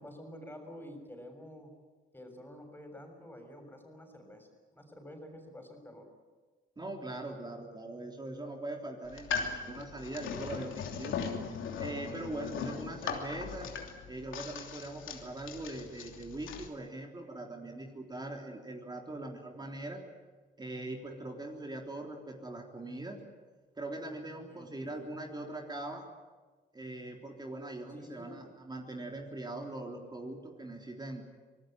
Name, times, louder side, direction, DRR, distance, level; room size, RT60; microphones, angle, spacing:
voice 1, 0.0-1.7 2.1-6.1 24.5-25.1 27.9-28.5, equal, 10° left, 4 dB, 6.9 m, -49 dB
voice 2, 6.8-11.1 11.8-13.7 14.1-20.0 20.6-23.2 23.8-26.0 26.7-31.2, right 2 dB, 20° right, 2 dB, 3.6 m, -41 dB
sound 1, 9.0-16.7, left 6 dB, 80° left, 3.0 m, -39 dB
26.0 x 19.0 x 9.2 m, 1.3 s
cardioid pair, 90°, 20 cm